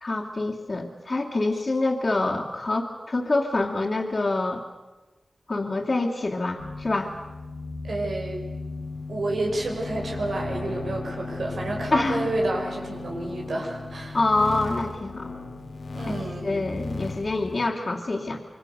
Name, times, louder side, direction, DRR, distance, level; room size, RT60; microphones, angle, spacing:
voice 1, 0.0-4.6 5.5-7.1 11.9-12.3 14.1-15.3 16.4-18.4, left 2 dB, 45° left, -4 dB, 2.6 m, -26 dB
sound 1, 6.6-17.7, left 3 dB, 75° left, 2.1 m, -36 dB
voice 2, 7.8-8.4 9.1-14.2 15.9-16.7, right 2 dB, 80° right, 1 dB, 5.6 m, -30 dB
26.5 x 23.5 x 6.8 m, 1.2 s
wide cardioid pair, 70°, 0 cm